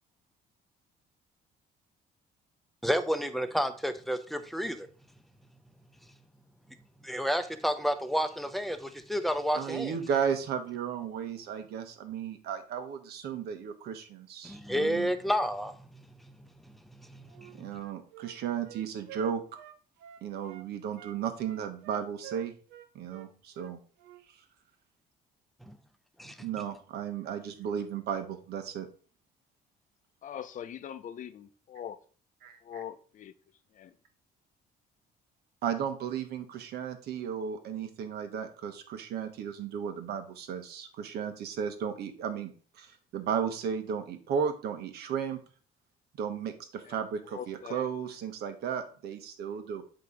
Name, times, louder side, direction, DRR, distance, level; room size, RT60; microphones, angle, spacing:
voice 1, 2.8-4.9 7.0-9.9 14.4-15.8 16.2-16.5 17.0-17.8 26.2-26.5, equal, ahead, 0.8 m, -31 dB
voice 2, 9.5-15.1 17.5-19.5 20.2-22.5 22.9-23.8 26.4-28.9 32.4-32.6 35.6-45.4 46.2-49.8, right 7 dB, 70° right, 1.2 m, -34 dB
Wind instrument woodwind instrument, 17.3-20.7 21.0-24.2, right 11 dB, 85° right, 0.7 m, -49 dB
voice 3, 30.2-32.0 32.6-33.3 33.7-33.9 46.8-47.0 47.3-47.8, left 9 dB, 50° left, 0.7 m, -42 dB
7.8 x 3.0 x 5.2 m
cardioid pair, 110°, 17 cm